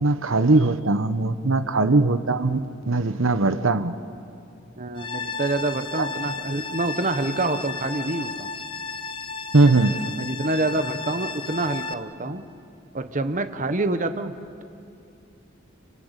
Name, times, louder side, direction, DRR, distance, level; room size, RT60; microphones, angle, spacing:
voice 1, 0.0-3.9 9.5-10.1, right 2 dB, 85° right, 10 dB, 1.0 m, -20 dB
voice 2, 4.8-8.5 10.2-12.4 12.9-14.3, right 2 dB, 40° right, 9 dB, 1.2 m, -27 dB
sound 1, 5.0-11.9, left 4 dB, 25° left, 0.8 m, -33 dB
26.5 x 25.0 x 8.2 m, 2.5 s
head